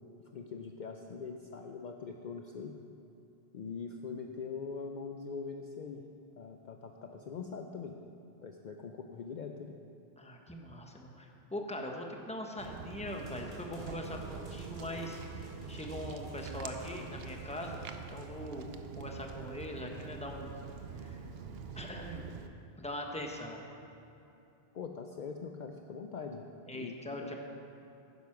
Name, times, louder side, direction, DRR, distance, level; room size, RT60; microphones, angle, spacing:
voice 1, 0.3-2.8 3.5-6.0 6.4-8.0 8.4-9.7 24.7-26.4 26.7-27.3, left 5 dB, 55° left, 3 dB, 0.7 m, -42 dB
voice 2, 10.2-17.8 18.1-18.7 19.0-20.5 21.0-21.3 21.8-22.2 22.8-23.6 26.7-27.3, left 1 dB, 5° left, 1 dB, 1.0 m, -41 dB
Walk footsteps, 12.6-22.5, right 5 dB, 75° right, 0.9 m, -45 dB
sound 1, 13.1-18.3, right 1 dB, 50° right, 2.6 m, -54 dB
10.5 x 9.6 x 6.0 m, 2.8 s
omnidirectional pair, 1.0 m